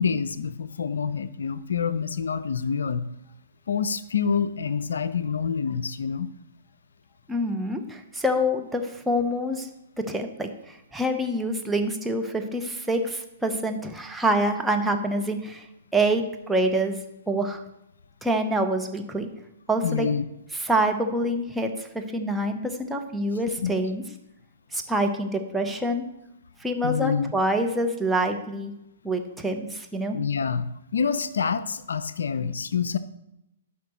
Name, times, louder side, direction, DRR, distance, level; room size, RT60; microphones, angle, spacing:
voice 1, 0.0-3.0 3.7-6.3 19.8-20.2 23.6-23.7 26.8-27.3 30.1-30.6 30.9-33.0, left 6 dB, 70° left, 13 dB, 0.4 m, -27 dB
voice 2, 7.3-9.7 10.0-10.5 10.9-15.6 15.9-17.0 17.3-17.6 18.2-19.3 19.7-20.1 20.5-24.0 24.7-26.0 26.6-28.7 29.0-30.2, right 1 dB, 5° right, 3 dB, 0.9 m, -26 dB
14.0 x 5.8 x 3.1 m, 0.86 s
figure-of-eight pair, 115°, 0 cm